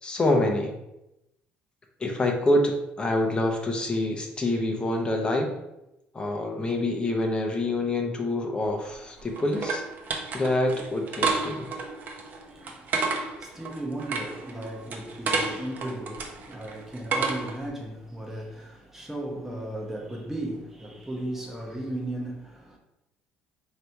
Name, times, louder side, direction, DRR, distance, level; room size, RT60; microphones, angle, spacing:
voice 1, 0.0-0.7 2.0-5.5 6.1-9.8 10.3-11.7, left 1 dB, 25° left, 0.8 m, -26 dB
sound 1, 8.7-17.7, right 4 dB, 50° right, 0.7 m, -32 dB
voice 2, 12.4-22.8, right 1 dB, 10° right, 1.0 m, -36 dB
3.2 x 2.8 x 4.5 m
supercardioid pair, 90°, 4 cm